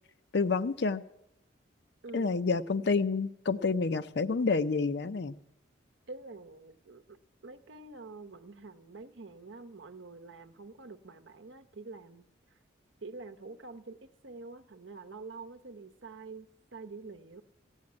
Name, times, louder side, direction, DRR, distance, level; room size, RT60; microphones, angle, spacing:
voice 1, 0.3-1.0 2.1-5.4, left 4 dB, 55° left, 0.5 m, -28 dB
voice 2, 2.0-2.4 6.1-7.2 7.4-12.6 13.0-17.4, right 3 dB, 70° right, 0.8 m, -47 dB
16.0 x 6.4 x 9.6 m
head